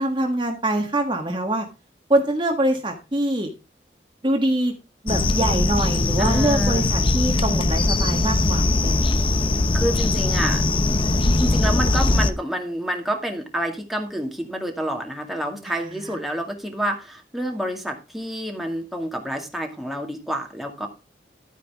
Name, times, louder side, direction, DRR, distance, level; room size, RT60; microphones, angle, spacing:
voice 1, 0.0-1.6 2.1-3.5 4.2-4.7 5.0-9.1 15.7-15.8 16.0-16.2, right 1 dB, 25° right, 2 dB, 1.6 m, -24 dB
sound 1, 5.1-12.3, left 2 dB, 30° left, 0.8 m, -20 dB
voice 2, 6.2-6.9 9.7-10.6 11.3-20.9, right 1 dB, ahead, 2 dB, 2.1 m, -28 dB
12.5 x 9.2 x 3.5 m, 0.29 s
head